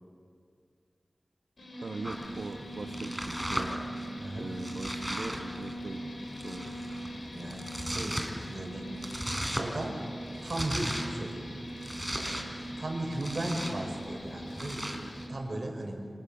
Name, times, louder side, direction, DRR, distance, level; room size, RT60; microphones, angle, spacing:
sound 1, 1.6-15.3, equal, 70° left, 6.0 m, -41 dB
voice 1, 1.8-3.8 4.4-6.1 6.4-6.7, right 3 dB, 85° right, 3 dB, 1.1 m, -40 dB
Domestic sounds home sounds, 2.0-15.3, equal, 5° right, 3.9 m, -38 dB
voice 2, 7.3-8.9 9.5-10.0 10.4-11.4 12.8-15.0 15.3-16.0, right 1 dB, 60° right, 2 dB, 5.5 m, -36 dB
29.0 x 27.0 x 7.2 m, 2.2 s
wide cardioid pair, 75°, 0 cm